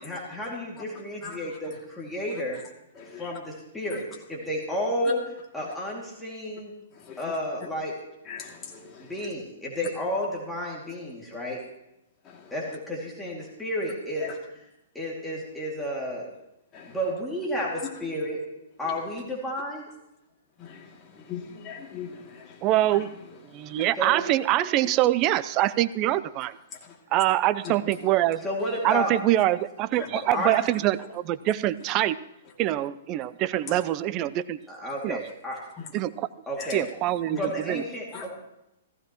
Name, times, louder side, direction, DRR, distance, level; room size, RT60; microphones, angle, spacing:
voice 1, 0.0-2.6 3.2-4.0 4.3-5.2 5.5-6.7 7.2-7.9 9.0-11.6 12.5-14.3 14.9-16.3 16.9-18.4 18.8-19.9 24.0-24.2 28.4-29.1 30.0-30.5 34.7-35.6 36.5-36.8 37.4-38.3, equal, 5° left, -4 dB, 2.3 m, -31 dB
voice 2, 2.9-3.3 5.0-5.1 5.6-5.7 6.9-7.3 8.2-9.3 12.2-12.7 14.2-14.3 16.7-17.0 17.8-18.2 18.8-19.0 20.6-23.1 23.5-23.9 24.8-24.9 26.7-27.0 27.6-28.3 29.9-30.1 33.6-33.8 35.8-35.9 36.6-36.9 37.3-37.4 38.1-38.3, left 7 dB, 25° left, -1 dB, 2.5 m, -41 dB
voice 3, 22.6-23.1 23.5-26.6 27.1-28.5 28.8-32.2 32.6-34.6 35.0-35.2 35.9-36.3 36.7-37.8, right 14 dB, 30° right, 15 dB, 0.4 m, -24 dB
15.5 x 15.0 x 3.0 m, 0.87 s
hypercardioid pair, 150°, 0 cm